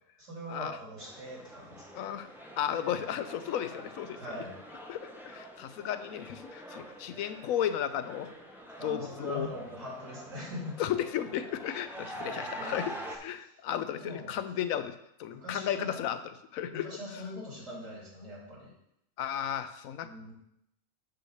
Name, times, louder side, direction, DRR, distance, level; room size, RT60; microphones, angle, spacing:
voice 1, 0.2-2.1 4.2-4.5 8.8-10.8 12.0-13.5 13.9-14.3 15.3-16.0 16.7-18.7 20.0-20.3, left 1 dB, 65° right, -5 dB, 3.3 m, -42 dB
sound 1, 1.0-13.2, right 1 dB, ahead, 0.6 m, -46 dB
voice 2, 1.9-2.3 2.6-4.2 4.9-8.3 8.8-9.5 10.8-12.9 13.2-16.2 16.5-17.0 19.2-20.1, left 10 dB, 80° left, 11 dB, 1.0 m, -34 dB
8.3 x 3.3 x 6.4 m, 0.77 s
omnidirectional pair, 1.4 m